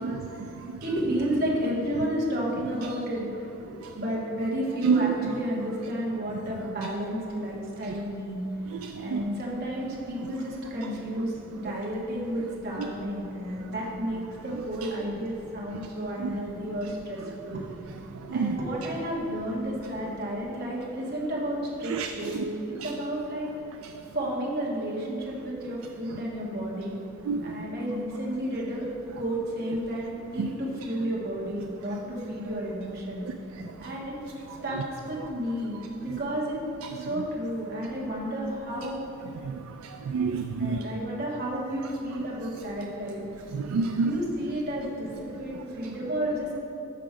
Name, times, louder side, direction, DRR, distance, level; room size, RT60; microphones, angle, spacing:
voice 1, 0.0-0.8 3.8-3.9 4.8-5.1 6.3-6.4 6.8-6.9 7.8-8.0 8.7-9.2 15.7-15.9 16.2-16.3 18.1-18.6 21.8-22.1 22.3-22.5 22.8-22.9 27.2-27.7 30.4-30.5 33.3-33.9 34.7-34.8 35.2-35.3 36.1-36.2 37.0-37.1 39.4-40.8 43.5-44.2 45.5-45.6, right 5 dB, 75° right, 6 dB, 0.3 m, -29 dB
voice 2, 0.8-3.3 3.9-8.4 9.0-17.6 18.3-23.5 24.1-27.0 27.4-28.9 29.2-33.3 33.8-34.2 34.6-34.8 35.1-36.6 37.0-39.0 40.6-43.2 44.0-46.6, equal, 50° right, -5 dB, 1.4 m, -31 dB
5.9 x 5.7 x 4.9 m, 2.9 s
head